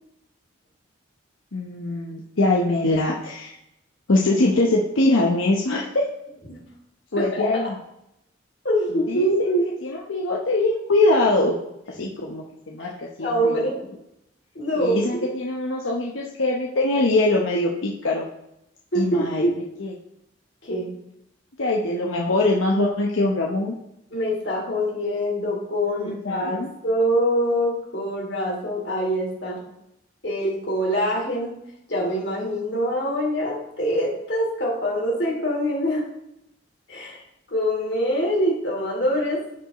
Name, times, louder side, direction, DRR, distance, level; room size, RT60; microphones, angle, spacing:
voice 1, 1.5-3.5 4.1-6.1 7.1-7.7 9.1-9.6 9.8-11.6 11.9-13.7 14.7-18.3 18.9-19.5 19.8-19.9 21.6-23.7 25.9-26.7, left 2 dB, 90° left, -1 dB, 0.9 m, -23 dB
voice 2, 7.2-7.6 8.6-9.7 13.2-13.8 14.5-15.3 18.9-19.6 20.6-20.9 24.1-29.6 30.2-31.5 31.9-36.1 36.9-37.2 37.5-39.6, equal, 60° left, -3 dB, 2.6 m, -24 dB
14.0 x 4.8 x 3.0 m, 0.84 s
head